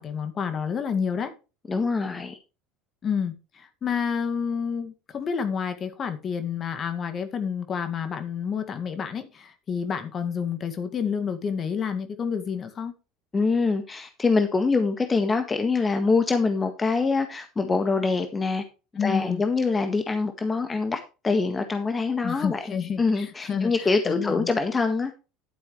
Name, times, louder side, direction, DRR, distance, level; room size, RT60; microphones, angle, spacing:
voice 1, 0.0-1.3 3.0-12.9 19.0-19.4 22.2-24.5, left 6 dB, 40° left, 2.0 m, -29 dB
voice 2, 1.7-2.4 13.3-18.6 19.0-22.6 23.0-25.1, left 4 dB, 25° left, 1.6 m, -24 dB
11.5 x 9.0 x 3.2 m
hypercardioid pair, 70°, 0 cm